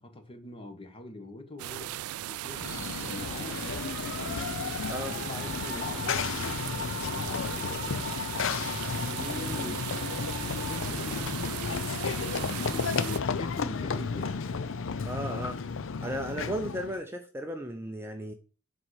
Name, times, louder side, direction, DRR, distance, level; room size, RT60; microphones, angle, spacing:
voice 1, 0.0-2.0 2.3-4.5 5.1-8.0 10.5-14.4, left 2 dB, 25° left, 1.4 m, -43 dB
sound 1, 1.6-13.2, right 14 dB, 90° right, 0.3 m, -38 dB
Run / Train, 2.5-17.0, left 5 dB, 65° left, 0.5 m, -33 dB
voice 2, 9.0-9.8 15.1-15.6 16.0-18.3, equal, 10° right, 0.6 m, -35 dB
sound 2, 10.6-14.7, left 2 dB, 45° left, 2.8 m, -56 dB
7.4 x 4.3 x 6.4 m
head